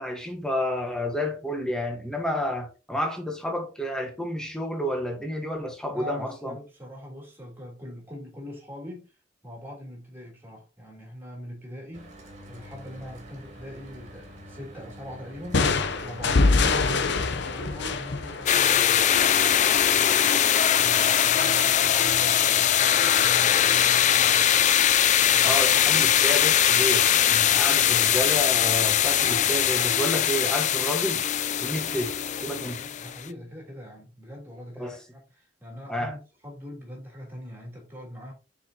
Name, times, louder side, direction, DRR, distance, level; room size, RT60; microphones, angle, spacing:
voice 1, 0.0-6.6 25.4-31.2 31.6-32.1 32.4-32.8 34.8-35.0 35.9-36.1, equal, 5° left, 1.3 m, -30 dB
voice 2, 5.9-9.1 9.4-12.1 12.5-19.1 19.9-20.3 20.7-24.7 25.2-25.8 27.9-28.1 32.6-36.2 36.4-38.3, equal, 10° right, 3.1 m, -42 dB
Mechanical fan, 11.9-29.7, equal, 40° right, 2.1 m, -46 dB
sound 1, 15.5-19.2, left 3 dB, 65° left, 0.7 m, -24 dB
sound 2, 18.5-33.2, left 10 dB, 40° left, 0.4 m, -21 dB
6.9 x 4.9 x 2.8 m
head